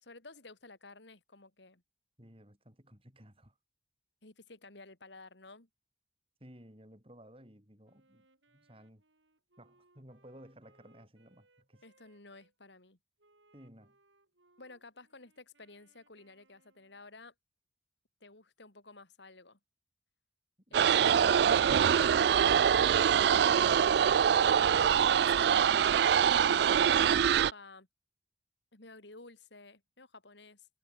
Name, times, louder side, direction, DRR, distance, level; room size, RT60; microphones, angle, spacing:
voice 1, 0.0-1.8 4.2-5.7 11.8-13.0 14.6-17.3 18.2-19.6 20.7-22.7 23.0-24.2 24.8-27.9 28.7-30.7, left 3 dB, 70° left, 3.0 m, -53 dB
voice 2, 2.2-3.6 6.4-8.3 8.5-9.0 9.6-11.8 13.5-14.0, equal, 30° right, 7.9 m, -56 dB
Wind instrument woodwind instrument, 7.8-12.5 13.2-17.1, right 2 dB, 80° right, 5.5 m, -70 dB
sound 1, 20.7-27.5, right 8 dB, 60° right, 0.3 m, -24 dB
head